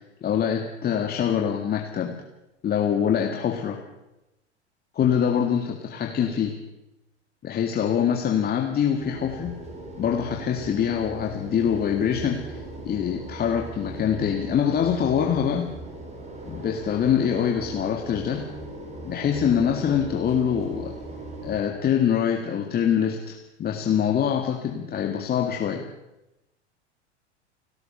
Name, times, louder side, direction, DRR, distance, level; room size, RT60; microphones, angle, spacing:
voice 1, 0.0-2.2 2.6-3.8 5.0-6.6 7.4-9.6 10.0-15.7 16.4-18.5 19.0-20.9 21.4-25.8, left 8 dB, 25° left, 3 dB, 1.9 m, -24 dB
sound 1, 9.0-21.6, right 2 dB, 20° right, 5.3 m, -39 dB
29.5 x 13.0 x 6.9 m, 0.94 s
figure-of-eight pair, 85°, 35 cm